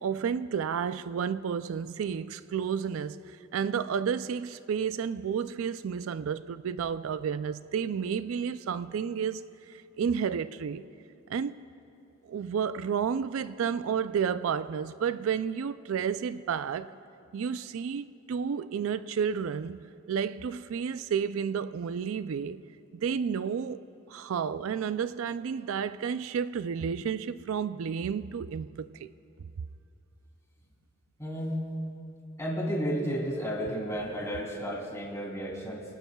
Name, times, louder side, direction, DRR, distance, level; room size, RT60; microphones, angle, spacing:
voice 1, 0.0-10.9 11.3-11.5 12.2-16.9 17.3-22.6 22.9-23.8 24.1-29.1, right 7 dB, 70° right, 0.4 m, -31 dB
voice 2, 31.2-31.6 32.4-35.8, equal, 15° left, 3.1 m, -32 dB
28.5 x 18.5 x 2.3 m
head